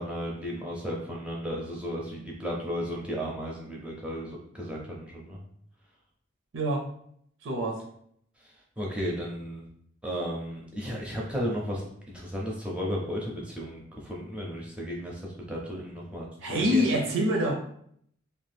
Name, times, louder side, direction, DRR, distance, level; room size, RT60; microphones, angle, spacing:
voice 1, 0.0-5.4 8.8-9.6 10.0-16.9, equal, 5° right, -3 dB, 0.5 m, -34 dB
voice 2, 6.5-6.9 7.4-7.8 16.4-17.5, equal, 65° right, 1 dB, 0.5 m, -26 dB
2.7 x 2.2 x 3.3 m, 0.67 s
head